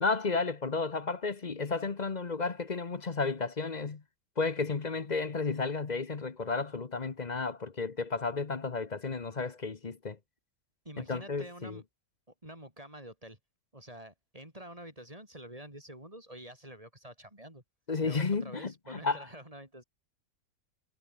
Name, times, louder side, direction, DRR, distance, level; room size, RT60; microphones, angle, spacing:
voice 1, 0.0-4.0 4.4-10.2 11.0-11.8 17.9-19.3, left 4 dB, 30° left, 1.1 m, -32 dB
voice 2, 10.9-11.8 12.4-13.4 13.7-17.6 18.0-19.8, right 1 dB, 25° right, 5.2 m, -48 dB
omnidirectional pair, 1.6 m